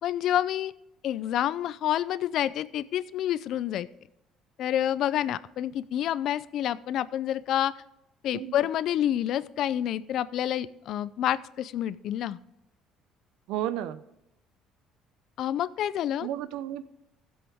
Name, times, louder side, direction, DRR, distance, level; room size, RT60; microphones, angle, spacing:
voice 1, 0.0-0.7 1.0-3.9 4.6-7.7 8.2-12.4 15.4-16.3, left 11 dB, 55° left, 17 dB, 0.5 m, -28 dB
voice 2, 13.5-14.0 16.2-16.9, right 12 dB, 80° right, 14 dB, 0.7 m, -32 dB
15.5 x 7.9 x 3.6 m, 0.87 s
cardioid pair, 140°, 0 cm